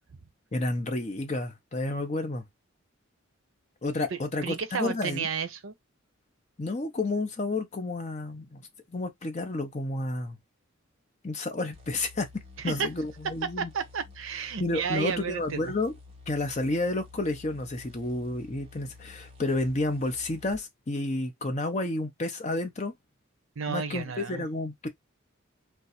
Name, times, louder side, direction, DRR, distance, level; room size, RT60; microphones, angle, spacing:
voice 1, 0.5-2.4 3.8-5.3 6.6-8.6 8.9-10.4 11.2-13.7 14.6-15.9 16.3-22.9 23.7-24.9, left 2 dB, 35° left, 0.6 m, -31 dB
voice 2, 4.1-5.7 12.6-12.9 13.6-15.7 23.6-24.4, right 6 dB, 70° right, 0.6 m, -32 dB
sound 1, 11.7-20.6, left 3 dB, 30° right, 0.9 m, -51 dB
2.6 x 2.3 x 4.0 m
head